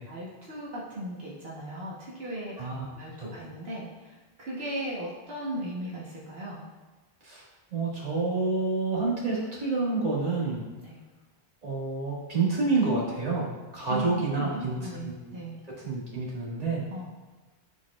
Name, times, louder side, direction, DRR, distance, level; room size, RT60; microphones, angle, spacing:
voice 1, 0.1-2.6 2.9-6.6 10.8-11.0 13.8-14.1 14.3-15.6 16.9-17.0, right 1 dB, 75° right, -6 dB, 1.4 m, -37 dB
voice 2, 7.7-10.6 11.6-13.5 13.7-14.8 15.0-15.4 15.8-16.8, right 3 dB, 40° right, -6 dB, 1.8 m, -28 dB
11.0 x 4.7 x 2.4 m, 1.3 s
omnidirectional pair, 1.1 m